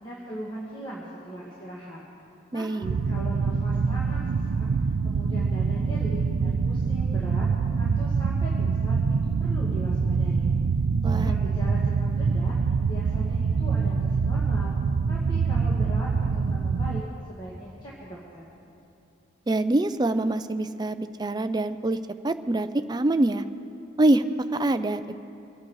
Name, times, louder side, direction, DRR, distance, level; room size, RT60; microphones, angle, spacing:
voice 1, 0.0-2.0 2.5-4.7 5.0-7.5 7.8-9.0 9.4-10.5 11.0-12.6 12.9-14.8 15.1-17.0 17.3-18.5, equal, 20° left, -6 dB, 1.7 m, -39 dB
voice 2, 2.5-2.9 11.0-11.3 19.5-22.0 22.2-23.4 24.0-24.2 24.5-25.0, right 2 dB, 20° right, 11 dB, 0.4 m, -24 dB
sound 1, 2.8-17.0, right 5 dB, 90° right, 0.4 m, -25 dB
24.5 x 8.6 x 4.8 m, 2.6 s
head